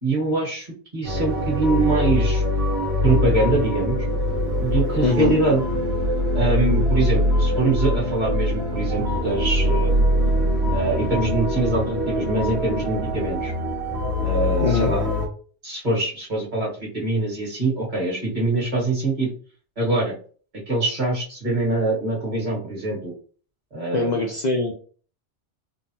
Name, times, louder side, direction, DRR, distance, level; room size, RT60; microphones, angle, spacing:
voice 1, 0.0-0.7 0.9-2.4 2.8-4.0 4.6-5.6 6.3-9.9 10.7-13.5 14.1-15.1 15.6-19.3 19.8-20.2 20.7-23.1 23.7-24.2, right 2 dB, 40° right, -4 dB, 1.4 m, -24 dB
sound 1, 1.0-15.3, left 1 dB, 70° right, 1.3 m, -23 dB
voice 2, 5.0-5.4 14.6-14.9 23.9-24.7, left 3 dB, 55° left, 2 dB, 0.5 m, -22 dB
3.7 x 2.0 x 2.7 m, 0.42 s
omnidirectional pair, 1.2 m